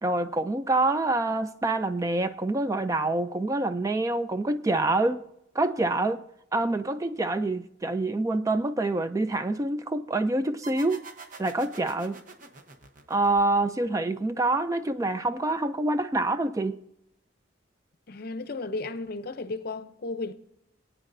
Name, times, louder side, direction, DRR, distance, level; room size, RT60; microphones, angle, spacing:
voice 1, 0.0-5.2 5.5-6.2 6.5-11.0 11.4-12.2 13.1-16.8, right 2 dB, 15° right, 0.3 m, -26 dB
sound 1, 10.6-13.9, right 4 dB, 45° right, 0.9 m, -46 dB
voice 2, 18.1-20.3, left 3 dB, 50° left, 0.6 m, -34 dB
22.5 x 9.0 x 2.6 m
head